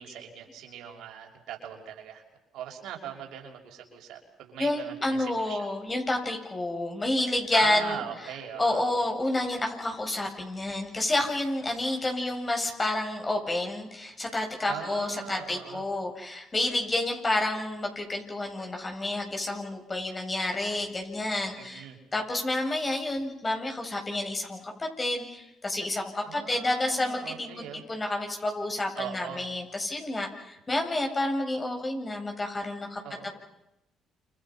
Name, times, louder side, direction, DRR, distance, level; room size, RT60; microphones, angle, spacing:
voice 1, 0.0-2.2 2.5-5.7 7.5-8.8 14.7-15.8 21.6-22.0 26.2-27.8 29.0-29.5 33.0-33.3, right 9 dB, 75° right, 2 dB, 5.9 m, -40 dB
voice 2, 4.6-8.0 8.6-33.3, left 2 dB, 25° left, 3 dB, 7.9 m, -29 dB
29.0 x 29.0 x 5.8 m, 0.86 s
supercardioid pair, 75°, 0 cm